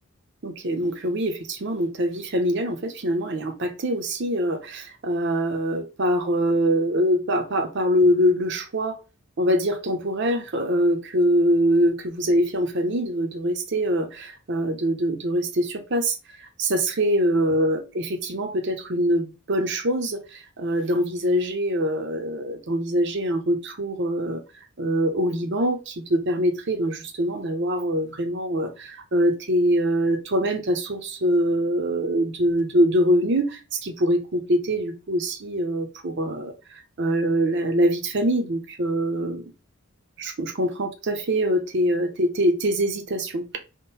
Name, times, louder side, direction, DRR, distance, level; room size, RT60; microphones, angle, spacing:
voice 1, 0.4-9.0 9.4-24.4 24.8-39.4 40.2-43.6, equal, 55° right, 0.7 m, -24 dB
3.6 x 2.1 x 4.0 m
head